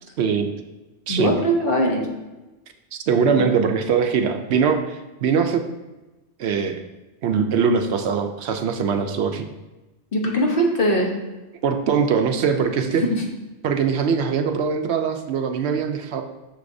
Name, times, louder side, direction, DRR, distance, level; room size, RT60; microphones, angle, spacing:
voice 1, 0.2-0.5 1.1-1.3 3.1-5.6 6.4-6.8 7.2-9.5 11.6-13.0 13.6-16.2, right 6 dB, 70° right, 6 dB, 0.8 m, -22 dB
voice 2, 1.1-2.0 3.3-3.5 10.1-11.1 13.0-13.2, equal, 50° left, 0 dB, 1.2 m, -21 dB
6.5 x 6.5 x 2.6 m, 1.1 s
omnidirectional pair, 1.2 m